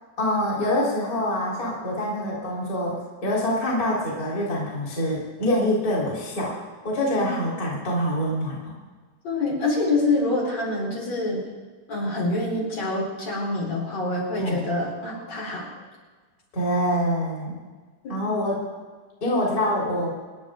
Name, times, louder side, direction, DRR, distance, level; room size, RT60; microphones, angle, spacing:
voice 1, 0.2-6.5 6.8-8.7 14.4-14.6 16.5-17.5 18.1-18.6 19.2-20.1, left 1 dB, 25° left, -5 dB, 4.1 m, -25 dB
voice 2, 9.2-11.4 11.9-15.6 18.0-18.2, left 2 dB, 50° left, -4 dB, 5.3 m, -26 dB
27.5 x 10.5 x 3.8 m, 1.4 s
omnidirectional pair, 4.1 m